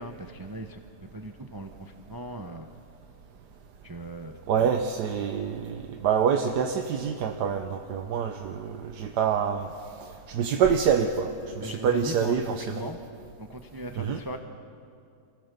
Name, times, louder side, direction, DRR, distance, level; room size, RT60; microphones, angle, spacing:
voice 1, 0.0-2.7 3.8-4.7 11.6-13.0 13.4-14.4, right 1 dB, 20° right, 6 dB, 0.5 m, -38 dB
voice 2, 4.5-9.7 10.0-11.3 11.6-12.9 14.0-14.2, right 7 dB, 85° right, 5 dB, 1.4 m, -26 dB
25.5 x 16.5 x 6.8 m, 2.5 s
omnidirectional pair, 1.7 m